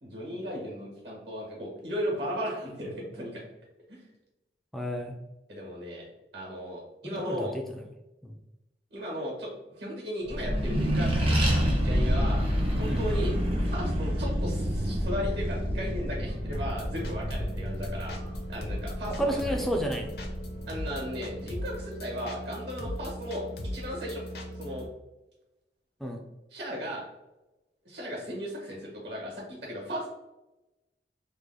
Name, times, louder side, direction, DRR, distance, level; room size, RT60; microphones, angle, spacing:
voice 1, 0.0-3.4 3.9-4.0 5.5-6.1 6.3-7.5 8.9-11.3 11.8-12.4 12.8-13.3 13.6-18.2 18.5-19.4 20.7-23.4 23.7-24.2 24.6-24.9 26.5-27.0 27.8-30.1, equal, 70° right, -2 dB, 1.2 m, -36 dB
voice 2, 4.7-5.2 7.0-7.8 8.2-8.3 12.8-13.0 19.2-20.1 26.0-26.2, equal, ahead, 2 dB, 0.3 m, -31 dB
Accelerating revving vroom, 10.2-21.2, equal, 35° right, 0.6 m, -28 dB
sound 1, 16.5-24.9, equal, 60° left, 0.6 m, -38 dB
3.2 x 2.1 x 3.5 m, 1.0 s
head